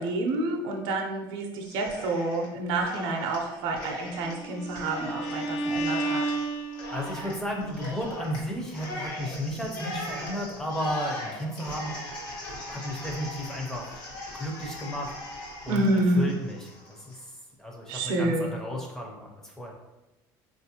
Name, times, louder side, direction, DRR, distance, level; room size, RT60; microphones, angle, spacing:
voice 1, 0.0-6.3 15.7-16.2 17.9-18.5, right 2 dB, 70° right, 1 dB, 0.5 m, -28 dB
Cheering, 1.6-2.5 2.8-17.2, left 1 dB, 60° left, 1.1 m, -40 dB
Bowed string instrument, 4.1-7.3, right 2 dB, 85° left, 0.5 m, -31 dB
voice 2, 6.9-12.0 12.7-13.9 14.3-15.9 16.2-17.2 17.6-19.7, equal, 5° left, -1 dB, 0.5 m, -33 dB
4.1 x 2.5 x 2.8 m, 1.0 s
cardioid pair, 170°, 8 cm